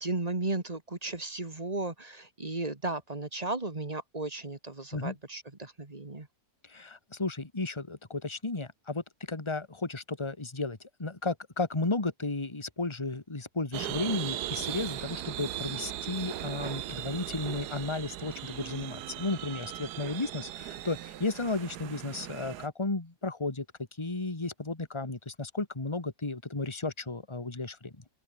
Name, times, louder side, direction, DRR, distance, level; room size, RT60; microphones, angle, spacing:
voice 1, 0.0-6.3, right 2 dB, 25° right, 2.0 m, -35 dB
voice 2, 6.6-23.7 24.0-28.0, left 3 dB, 15° left, 2.1 m, -34 dB
sound 1, 13.7-22.7, right 13 dB, 80° right, 1.3 m, -38 dB
omnidirectional pair, 1.7 m